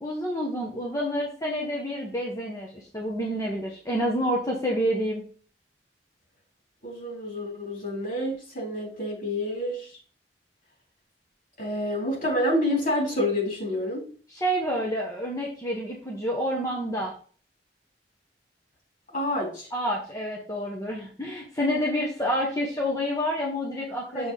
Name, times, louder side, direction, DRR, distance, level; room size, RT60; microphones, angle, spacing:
voice 1, 0.0-5.2 14.3-17.1 19.7-24.3, equal, 20° left, -2 dB, 1.3 m, -28 dB
voice 2, 6.8-10.0 11.6-14.1 19.1-19.7 24.1-24.3, left 1 dB, 50° left, -2 dB, 4.1 m, -28 dB
6.9 x 4.5 x 5.8 m, 0.43 s
head